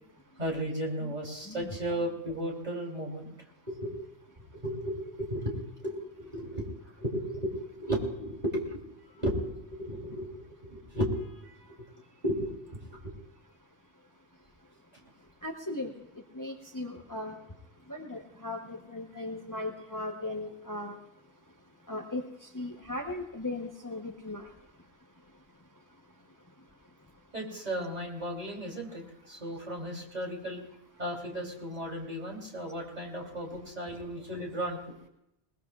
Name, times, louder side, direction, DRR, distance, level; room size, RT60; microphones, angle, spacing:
voice 1, 0.4-3.3 3.7-3.9 4.5-6.7 7.0-8.8 9.2-11.8 12.2-13.1 27.3-30.6 31.0-35.0, equal, 40° right, -2 dB, 3.4 m, -35 dB
voice 2, 15.4-15.9 16.3-17.4 17.9-21.0 21.9-22.2 22.5-24.5, left 2 dB, 20° left, 2 dB, 0.9 m, -37 dB
21.0 x 20.5 x 2.4 m, 0.84 s
omnidirectional pair, 1.0 m